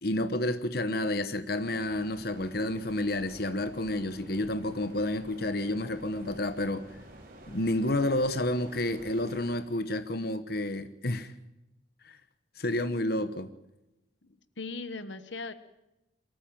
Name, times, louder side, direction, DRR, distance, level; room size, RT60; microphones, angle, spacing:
voice 1, 0.0-6.9 7.5-11.3 12.0-12.2 12.6-13.5, left 1 dB, 55° left, 11 dB, 1.2 m, -30 dB
sound 1, 1.5-9.6, right 1 dB, 45° right, 4.5 m, -50 dB
voice 2, 14.2-15.5, left 3 dB, 75° left, 13 dB, 1.2 m, -39 dB
23.0 x 14.0 x 9.0 m, 0.93 s
head